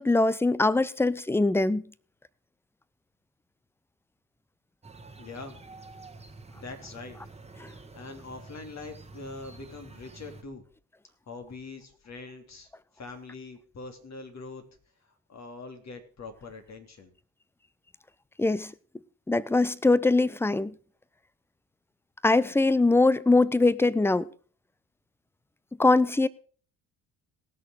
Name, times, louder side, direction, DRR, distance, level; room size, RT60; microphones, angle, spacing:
voice 1, 0.0-1.9 18.4-18.7 19.3-20.7 22.2-24.3 25.8-26.3, left 2 dB, 5° left, 0.6 m, -22 dB
sound 1, 4.8-10.4, right 3 dB, 15° right, 1.6 m, -48 dB
voice 2, 5.2-5.6 6.6-7.2 7.9-10.6 11.3-14.6 15.0-17.1, left 3 dB, 40° left, 3.0 m, -43 dB
18.5 x 6.5 x 4.9 m
hypercardioid pair, 55°, 40 cm